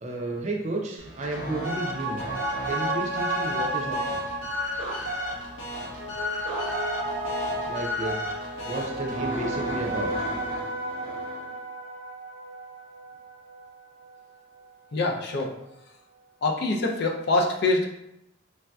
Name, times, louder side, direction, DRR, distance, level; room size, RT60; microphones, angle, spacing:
voice 1, 0.0-2.2 2.6-4.2 7.7-8.2 8.7-10.1, right 2 dB, 35° right, 0 dB, 0.4 m, -32 dB
sound 1, 1.0-11.6, equal, 85° left, 1.0 m, -34 dB
sound 2, 1.4-14.2 14.6-14.7, right 1 dB, 85° right, 0.5 m, -33 dB
sound 3, 2.3-7.7, right 4 dB, 35° left, 0.8 m, -42 dB
voice 2, 14.9-15.5 16.4-17.9, left 2 dB, 55° left, 1 dB, 0.4 m, -24 dB
3.2 x 2.6 x 2.2 m, 0.84 s
head